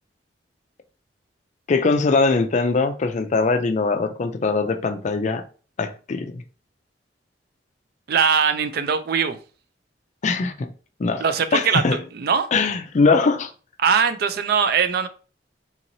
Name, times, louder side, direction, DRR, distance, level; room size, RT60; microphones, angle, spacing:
voice 1, 1.7-5.4 5.8-6.4 10.2-10.7 11.0-11.2 11.5-12.0 12.5-13.5, left 4 dB, 40° left, 0.4 m, -21 dB
voice 2, 8.1-9.4 11.2-11.8 12.1-12.5 13.8-15.1, right 6 dB, 60° right, 0.4 m, -21 dB
3.8 x 2.9 x 2.6 m
head